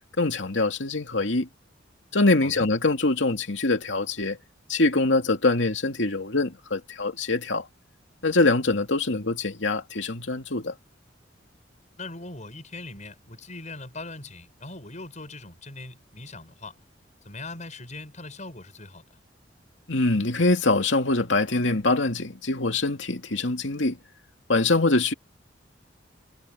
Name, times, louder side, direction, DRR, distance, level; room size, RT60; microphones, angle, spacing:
voice 1, 0.2-1.5 2.1-4.4 4.7-7.7 8.2-10.7 19.9-24.0 24.5-25.1, left 2 dB, 80° left, 2.5 m, -24 dB
voice 2, 12.0-16.8 17.2-19.0, left 2 dB, 40° left, 6.8 m, -40 dB
head